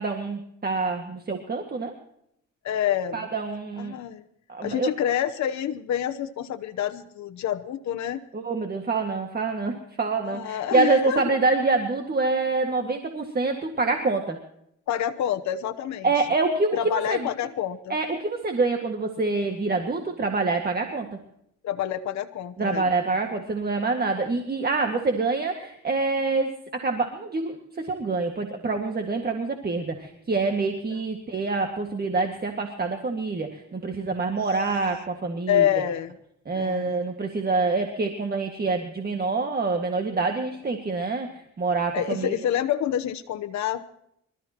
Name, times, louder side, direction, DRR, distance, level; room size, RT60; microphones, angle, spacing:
voice 1, 0.0-1.9 3.1-4.0 4.5-4.9 8.3-14.4 16.0-17.3 17.9-21.1 22.6-35.8 36.5-42.3, right 3 dB, 30° right, 4 dB, 1.9 m, -26 dB
voice 2, 2.6-3.3 3.8-4.2 4.6-8.2 10.2-11.4 14.9-16.1 16.7-18.0 21.6-22.9 30.9-31.0 35.5-36.1 36.5-36.9 41.9-43.8, left 10 dB, 65° left, 8 dB, 0.9 m, -27 dB
25.0 x 13.5 x 3.0 m, 0.73 s
cardioid pair, 90°, 30 cm